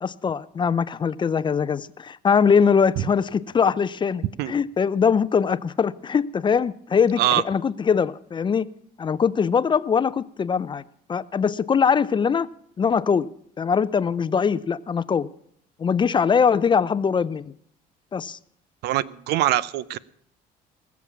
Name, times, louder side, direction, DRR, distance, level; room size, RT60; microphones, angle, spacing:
voice 1, 0.0-8.7 9.0-10.8 11.1-12.5 12.8-13.3 13.6-15.3 15.8-17.4 18.1-18.4, left 6 dB, 30° left, 0.5 m, -22 dB
voice 2, 18.8-20.0, right 14 dB, 80° right, 0.6 m, -23 dB
20.0 x 7.1 x 7.2 m
cardioid pair, 110°, 17 cm